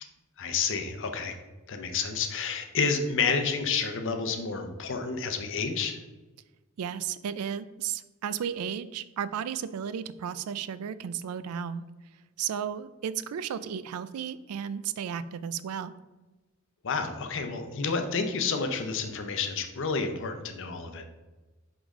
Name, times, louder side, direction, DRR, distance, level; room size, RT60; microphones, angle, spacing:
voice 1, 0.4-1.4 1.7-6.0 16.8-21.0, left 5 dB, 60° left, 6 dB, 0.7 m, -30 dB
voice 2, 6.8-11.9 12.4-15.9, right 8 dB, 90° right, 15 dB, 0.4 m, -34 dB
5.2 x 5.1 x 3.6 m, 1.2 s
head